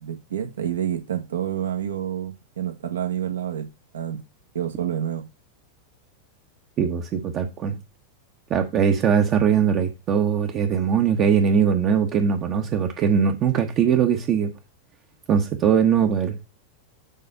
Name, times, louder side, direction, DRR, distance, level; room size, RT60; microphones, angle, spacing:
voice 1, 0.0-3.7 3.9-4.2 4.5-5.3, right 10 dB, 65° right, 1.4 m, -28 dB
voice 2, 6.8-7.8 8.5-14.5 15.3-16.4, right 7 dB, 35° right, 1.0 m, -21 dB
7.2 x 4.2 x 5.5 m
figure-of-eight pair, 90°, 0 cm